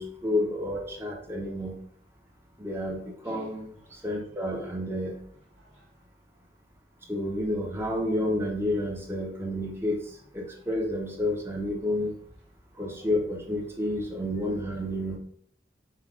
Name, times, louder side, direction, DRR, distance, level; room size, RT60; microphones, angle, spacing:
voice 1, 0.0-1.7 2.6-3.7 4.0-5.2 7.1-10.0 10.3-12.1 12.8-15.2, left 1 dB, 15° right, 0.7 m, -30 dB
voice 2, 2.9-3.5 3.8-4.0 5.6-6.0, left 1 dB, 85° right, 1.7 m, -52 dB
5.7 x 2.3 x 3.6 m
head